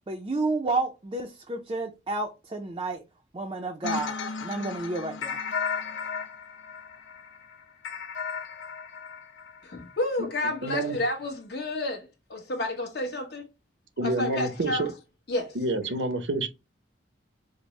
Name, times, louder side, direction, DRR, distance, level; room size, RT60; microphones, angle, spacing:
voice 1, 0.1-3.0 3.3-4.1 4.4-5.4, right 2 dB, 25° right, 0.4 m, -30 dB
sound 1, 3.8-10.0, left 5 dB, 85° left, 0.5 m, -35 dB
voice 2, 9.6-13.4 14.0-14.9 15.3-15.6, left 2 dB, 60° left, 1.1 m, -30 dB
voice 3, 10.6-11.0 14.0-14.9 15.5-16.5, right 2 dB, 80° right, 0.7 m, -28 dB
5.1 x 2.0 x 3.1 m
head